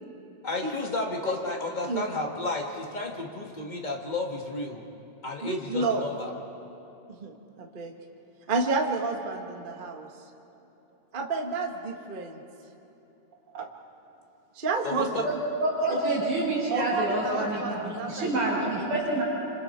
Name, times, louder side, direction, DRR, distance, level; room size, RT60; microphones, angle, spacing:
voice 1, 0.4-4.8 5.2-6.3 14.8-15.3, left 2 dB, 25° left, 0 dB, 1.0 m, -32 dB
voice 2, 1.2-1.5 1.9-2.0 5.4-6.0 7.2-7.9 8.5-10.1 11.1-12.4 13.5-13.7 14.5-15.2 15.9-16.0 16.7-18.6, right 3 dB, 90° right, 2 dB, 0.4 m, -30 dB
voice 3, 15.2-19.2, right 2 dB, 60° right, -9 dB, 6.2 m, -27 dB
27.5 x 27.0 x 4.4 m, 2.9 s
omnidirectional pair, 3.6 m